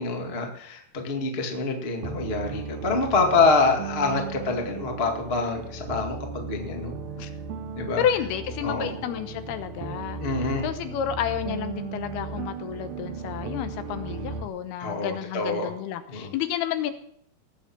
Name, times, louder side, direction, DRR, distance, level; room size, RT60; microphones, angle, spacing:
voice 1, 0.0-6.9 7.7-8.0 8.6-8.9 10.2-10.6 14.8-15.7 16.1-16.3, left 3 dB, 30° left, 3 dB, 1.1 m, -26 dB
sound 1, 2.0-14.5, right 4 dB, 70° right, 2.7 m, -36 dB
voice 2, 8.0-10.2 10.6-16.9, left 9 dB, 75° left, 10 dB, 2.8 m, -30 dB
19.5 x 8.6 x 6.0 m, 0.68 s
omnidirectional pair, 4.6 m